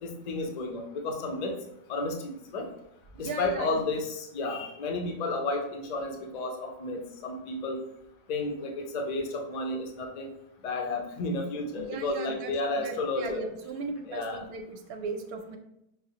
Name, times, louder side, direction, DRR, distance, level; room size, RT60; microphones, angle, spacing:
voice 1, 0.0-1.5 1.9-2.7 3.2-7.8 8.3-10.3 10.6-13.4 14.1-14.4, left 2 dB, 50° left, 2 dB, 0.5 m, -32 dB
voice 2, 3.2-3.8 11.8-15.6, right 4 dB, 65° right, 4 dB, 0.7 m, -37 dB
5.5 x 2.0 x 2.7 m, 0.81 s
omnidirectional pair, 1.3 m